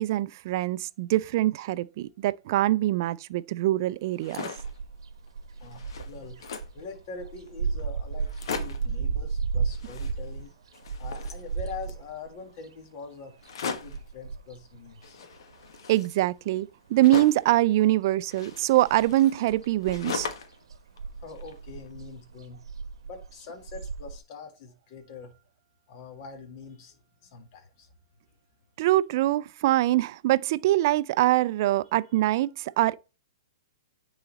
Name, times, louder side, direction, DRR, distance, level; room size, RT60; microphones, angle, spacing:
voice 1, 0.0-4.5 15.9-20.3 28.8-33.0, right 15 dB, 45° right, 0.4 m, -24 dB
sound 1, 4.0-4.8 5.3-5.4 5.6-6.8 7.5-7.6 7.8-7.9 8.2-8.9 9.7-10.5 10.7-12.0 13.4-14.1 15.0-17.5 18.3-20.6 21.0-21.9, left 5 dB, 65° left, 1.3 m, -39 dB
sound 2, 4.6-16.2 16.4-17.8 18.0-24.2, right 5 dB, 85° right, 0.9 m, -35 dB
voice 2, 5.6-6.4 6.7-10.5 11.0-15.2 21.2-22.6 23.1-25.3 25.9-27.9, left 4 dB, 40° left, 1.9 m, -43 dB
9.7 x 4.0 x 4.1 m
hypercardioid pair, 150°, 3 cm